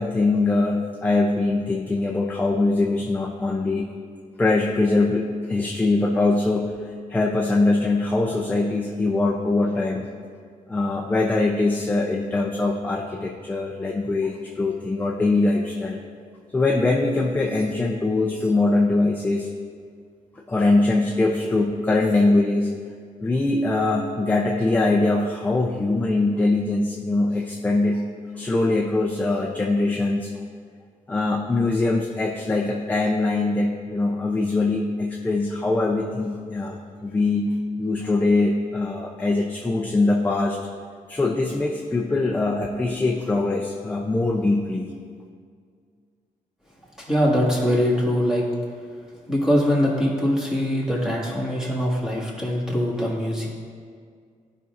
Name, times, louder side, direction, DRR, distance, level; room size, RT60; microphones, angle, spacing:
voice 1, 0.0-3.9 4.4-6.7 7.1-10.1 10.7-16.0 16.5-19.5 20.5-22.7 23.2-28.0 28.3-30.3 31.1-37.5 37.8-40.6 41.1-44.9, left 2 dB, 10° left, -1 dB, 0.5 m, -22 dB
voice 2, 47.0-48.4 49.3-53.5, equal, 5° right, -5 dB, 1.7 m, -22 dB
14.5 x 5.3 x 2.5 m, 2.1 s
wide cardioid pair, 155°, 14 cm